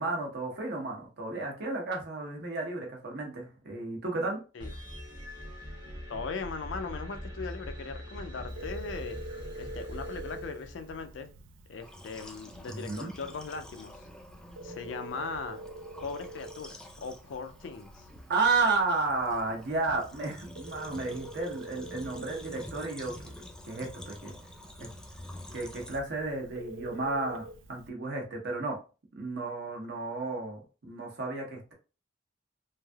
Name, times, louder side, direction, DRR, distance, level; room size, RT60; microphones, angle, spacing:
voice 1, 0.0-4.4 12.7-13.1 18.3-23.3 23.7-24.4 24.8-24.9 25.5-28.8 29.2-31.7, right 3 dB, 60° right, 1 dB, 0.9 m, -32 dB
sound 1, 4.6-11.2, equal, 25° right, 0.7 m, -42 dB
voice 2, 6.1-9.2 9.6-11.3 11.7-14.0 14.6-15.6 16.0-18.1, left 4 dB, 70° left, 8 dB, 0.4 m, -39 dB
Telephone, 8.5-27.9, right 2 dB, 85° right, 0.4 m, -47 dB
sound 2, 11.8-26.0, left 1 dB, 5° left, 0.3 m, -48 dB
3.2 x 2.6 x 2.3 m, 0.33 s
head